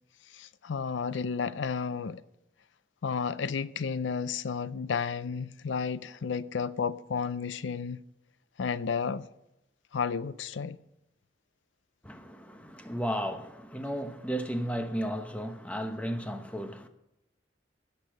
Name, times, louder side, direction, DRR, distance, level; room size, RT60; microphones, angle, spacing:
voice 1, 0.3-2.2 3.0-8.0 8.6-9.3 9.9-10.8, left 5 dB, 85° left, 0.5 m, -32 dB
voice 2, 12.0-16.9, equal, 5° left, 0.9 m, -34 dB
16.0 x 6.8 x 6.3 m
head